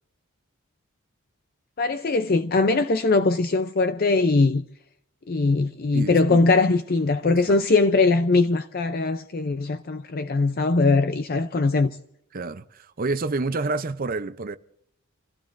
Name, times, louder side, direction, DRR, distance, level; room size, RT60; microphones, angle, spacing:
voice 1, 1.8-4.6 5.3-11.9, left 3 dB, 45° left, 0.5 m, -21 dB
voice 2, 5.9-6.5 7.2-7.6 12.3-14.6, right 3 dB, 40° right, 0.6 m, -29 dB
29.5 x 16.0 x 2.6 m
head